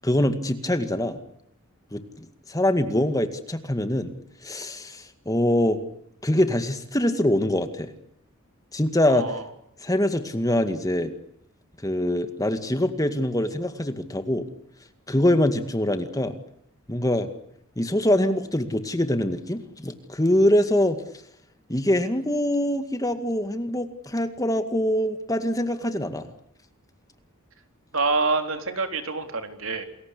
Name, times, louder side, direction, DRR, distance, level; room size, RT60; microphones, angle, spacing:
voice 1, 0.0-1.2 1.9-4.1 4.4-5.8 6.2-7.9 8.7-9.3 9.8-11.1 11.8-14.5 15.1-16.4 16.9-17.3 17.8-21.0 21.7-26.3, left 1 dB, 15° left, 9 dB, 2.1 m, -24 dB
voice 2, 9.1-9.4 27.9-29.8, right 3 dB, 65° right, 7 dB, 3.8 m, -26 dB
29.0 x 21.5 x 8.5 m, 0.72 s
head